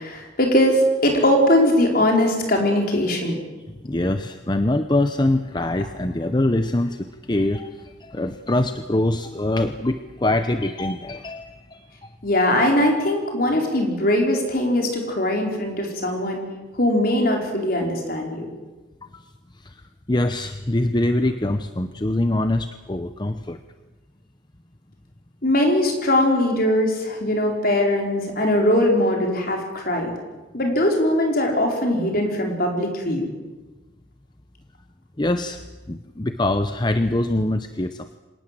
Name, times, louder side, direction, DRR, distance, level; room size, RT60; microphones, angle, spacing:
voice 1, 0.0-3.4 12.2-16.4 16.7-18.5 25.4-30.1 30.5-33.3, left 1 dB, 50° left, 2 dB, 5.0 m, -20 dB
voice 2, 3.7-12.1 19.0-19.2 19.5-23.6 35.2-35.6 35.9-38.2, left 1 dB, 25° left, 9 dB, 0.8 m, -24 dB
26.0 x 18.5 x 7.8 m, 1.2 s
head